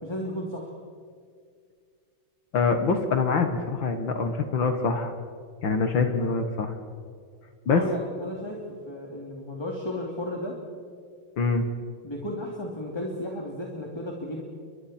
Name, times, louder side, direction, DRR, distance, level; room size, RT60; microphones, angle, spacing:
voice 1, 0.0-0.7 7.7-10.6 12.0-14.4, left 1 dB, 10° left, -1 dB, 2.7 m, -34 dB
voice 2, 2.5-5.1 5.6-6.8 7.7-7.8 11.4-11.6, left 4 dB, 65° left, 6 dB, 2.1 m, -24 dB
30.0 x 24.5 x 4.4 m, 2.1 s
omnidirectional pair, 2.4 m